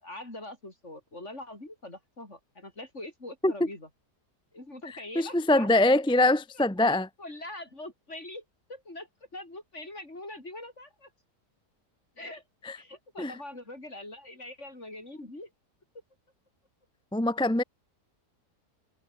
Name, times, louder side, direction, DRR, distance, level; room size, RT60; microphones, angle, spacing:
voice 1, 0.0-3.9 4.5-6.0 6.8-8.4 8.7-11.1 12.2-12.4 12.7-15.5, left 1 dB, 40° left, 6.2 m, -43 dB
voice 2, 5.1-7.1 12.6-12.8 13.2-13.4 17.1-17.6, left 2 dB, 5° left, 0.6 m, -23 dB
omnidirectional pair, 1.8 m